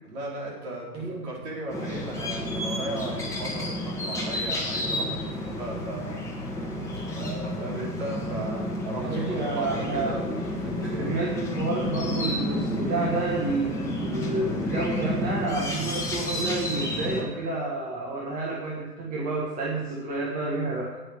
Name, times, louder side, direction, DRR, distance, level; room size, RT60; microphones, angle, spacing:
voice 1, 0.1-6.8 7.2-11.2, right 1 dB, 40° right, -3 dB, 4.3 m, -36 dB
voice 2, 0.9-1.3 9.0-10.1 11.0-21.0, right 3 dB, 15° right, -3 dB, 1.5 m, -30 dB
sound 1, 1.7-17.2, left 1 dB, 5° left, 1.8 m, -30 dB
9.1 x 8.8 x 6.9 m, 1.2 s
figure-of-eight pair, 120°, 49 cm